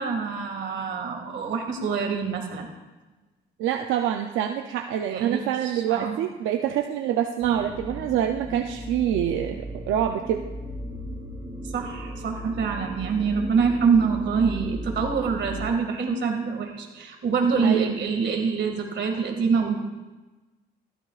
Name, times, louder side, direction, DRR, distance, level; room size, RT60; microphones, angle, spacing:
voice 1, 0.0-2.7 5.1-6.2 11.7-19.8, right 5 dB, 65° right, 3 dB, 2.1 m, -25 dB
voice 2, 3.6-10.4 17.6-17.9, right 10 dB, 90° right, 4 dB, 0.6 m, -26 dB
sound 1, 7.4-15.7, equal, 20° right, 2.7 m, -36 dB
14.5 x 12.0 x 2.4 m, 1.2 s
cardioid pair, 90°, 20 cm